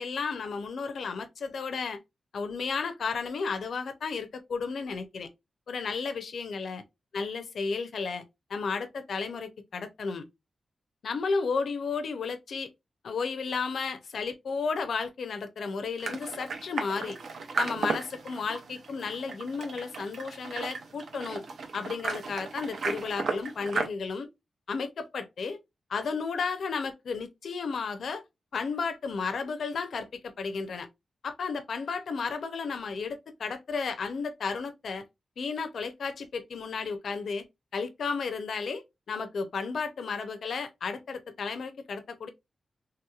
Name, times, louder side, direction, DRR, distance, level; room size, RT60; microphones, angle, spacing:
voice 1, 0.0-2.0 2.3-5.3 5.7-6.8 7.1-8.2 8.5-10.2 11.0-12.7 13.0-17.2 17.6-21.4 21.7-24.3 24.7-25.6 25.9-28.2 28.5-30.9 31.2-35.0 35.4-37.4 37.7-42.3, left 5 dB, 65° left, 0.5 m, -33 dB
sound 1, 16.0-23.9, right 4 dB, 70° right, 0.6 m, -35 dB
3.3 x 2.9 x 2.3 m
wide cardioid pair, 175°, 0 cm